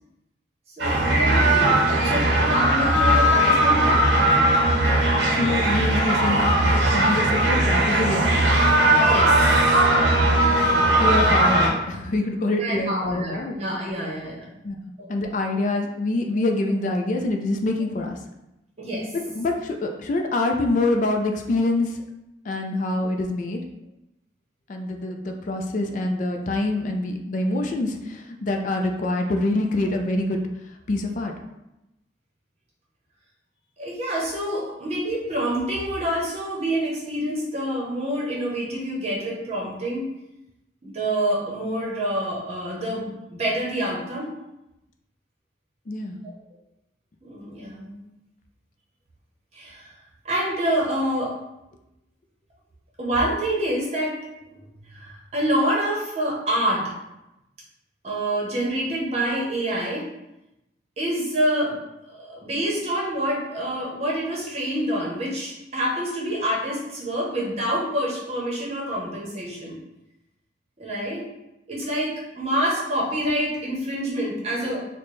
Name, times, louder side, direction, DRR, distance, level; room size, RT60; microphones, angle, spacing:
voice 1, 0.7-4.6 9.0-9.7 12.6-14.4 15.0-15.1 18.8-19.1 33.8-40.1 40.8-44.3 46.2-46.4 47.2-48.1 49.5-49.9 50.2-51.3 53.0-54.2 54.9-56.9 58.0-60.1 61.0-61.8 62.1-69.8 70.8-71.3 71.7-74.9, right 1 dB, 35° right, -4 dB, 0.8 m, -27 dB
sound 1, 0.8-11.7, right 1 dB, 70° right, 0.7 m, -19 dB
voice 2, 5.3-8.5 10.7-13.6 14.6-14.8 15.1-18.2 19.3-22.0 22.4-23.6 24.7-30.4 30.9-31.3 45.9-46.2, left 2 dB, 45° left, 3 dB, 0.3 m, -25 dB
4.1 x 2.1 x 3.1 m, 0.90 s
head